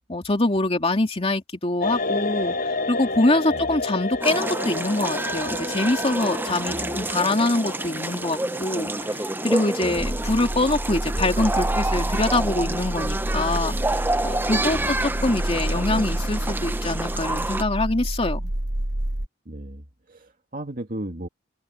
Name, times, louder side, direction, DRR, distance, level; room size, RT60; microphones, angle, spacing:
voice 1, 0.1-18.5, left 2 dB, 30° left, 2.7 m, -24 dB
sound 1, 1.8-11.7 12.0-12.2, left 3 dB, 50° left, 4.6 m, -31 dB
sound 2, 4.2-17.6, right 2 dB, 10° right, 0.7 m, -28 dB
voice 2, 6.7-7.0 9.8-10.1 14.6-15.0 19.5-21.3, right 1 dB, 45° right, 2.2 m, -36 dB
sound 3, 10.0-19.3, right 1 dB, 85° right, 2.0 m, -28 dB
head